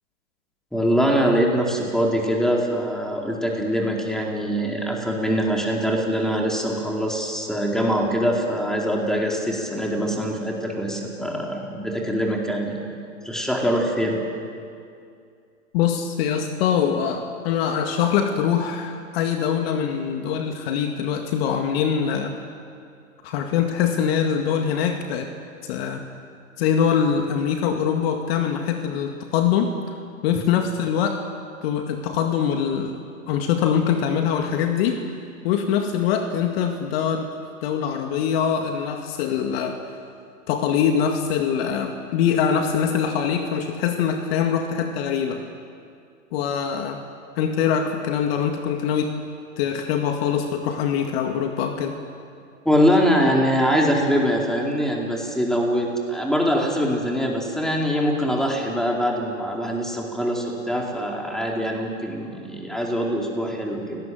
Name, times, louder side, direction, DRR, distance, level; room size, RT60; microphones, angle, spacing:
voice 1, 0.7-12.8 13.2-14.2 52.6-64.0, equal, ahead, -1 dB, 4.2 m, -23 dB
voice 2, 15.7-22.4 23.2-25.3 25.7-26.0 26.6-29.7 30.2-31.2 31.6-33.0 33.3-35.0 35.4-37.3 37.6-39.8 40.5-45.4 46.3-47.0 47.4-49.1 49.6-52.0, left 8 dB, 50° left, 4 dB, 2.1 m, -23 dB
30.0 x 18.5 x 7.9 m, 2.4 s
hypercardioid pair, 110°, 39 cm